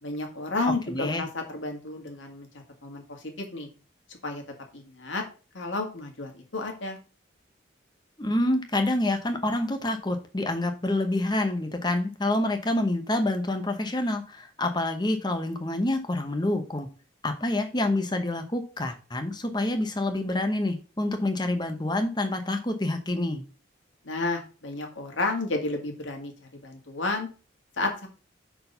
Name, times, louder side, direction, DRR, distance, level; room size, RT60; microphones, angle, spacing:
voice 1, 0.0-2.5 2.8-3.7 4.1-4.4 4.7-5.2 5.5-7.0 24.0-26.3 26.6-27.3 27.8-28.1, left 2 dB, 75° left, 3 dB, 2.0 m, -31 dB
voice 2, 0.9-1.2 8.2-16.9 17.2-23.4, left 1 dB, 20° left, 6 dB, 1.0 m, -27 dB
6.3 x 4.6 x 5.6 m, 0.35 s
head